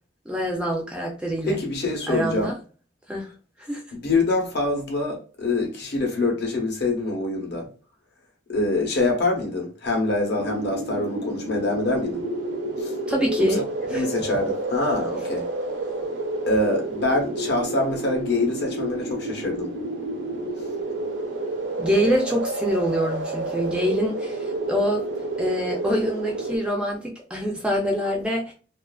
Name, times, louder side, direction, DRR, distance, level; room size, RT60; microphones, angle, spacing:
voice 1, 0.3-1.6 2.1-2.6 3.1-3.3 3.6-3.8 13.1-13.6 13.9-14.1 21.8-25.0 25.4-28.5, equal, 5° right, 0.3 m, -25 dB
voice 2, 1.4-2.5 3.9-7.7 8.5-12.2 12.8-13.0 13.5-13.6 13.9-15.5 16.5-19.7, left 2 dB, 55° left, 0.8 m, -25 dB
sound 1, 10.4-26.6, right 2 dB, 70° right, 0.5 m, -30 dB
2.4 x 2.3 x 2.2 m
head